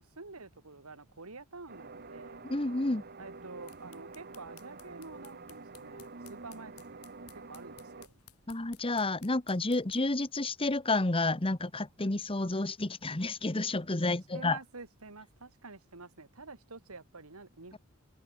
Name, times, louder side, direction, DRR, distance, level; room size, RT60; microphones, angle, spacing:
voice 1, 0.0-2.5 3.2-8.1 14.3-17.8, right 3 dB, 80° right, 2.3 m, -48 dB
sound 1, 1.7-8.1, right 3 dB, 45° right, 1.5 m, -48 dB
voice 2, 2.4-3.0 8.5-14.6, left 2 dB, 25° left, 1.2 m, -30 dB
sound 2, 3.4-10.2, left 11 dB, 90° left, 4.9 m, -59 dB
head